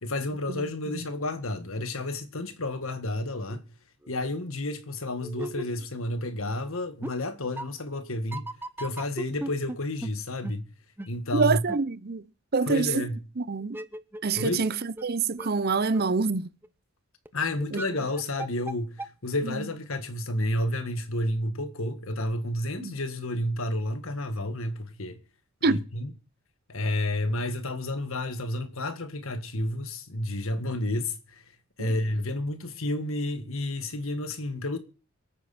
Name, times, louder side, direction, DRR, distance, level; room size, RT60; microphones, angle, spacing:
voice 1, 0.0-3.6 4.1-8.5 8.8-10.7 11.1-11.6 12.7-13.2 14.4-14.7 17.3-25.2 25.6-26.1 26.7-31.4 31.8-34.8, left 1 dB, 65° left, 1.7 m, -31 dB
sound 1, 3.5-3.6 4.0-4.1 4.9-6.3 6.6-6.7 7.0-7.1 7.6-7.7 8.3-9.8 10.0-10.1 10.4-10.5 11.0-11.1 11.7-11.8 13.6-14.7 15.0-15.1 15.4-15.5 15.9-16.0 16.6-16.7 17.3-17.4 17.6-18.7 19.0-19.1, right 1 dB, 10° right, 0.6 m, -36 dB
voice 2, 11.3-12.2 12.5-13.0 13.4-13.8 14.2-16.5 17.7-17.8 19.4-19.7 22.8-22.9 25.6-25.8 31.8-31.9, right 4 dB, 45° right, 0.7 m, -26 dB
23.5 x 9.1 x 4.2 m
head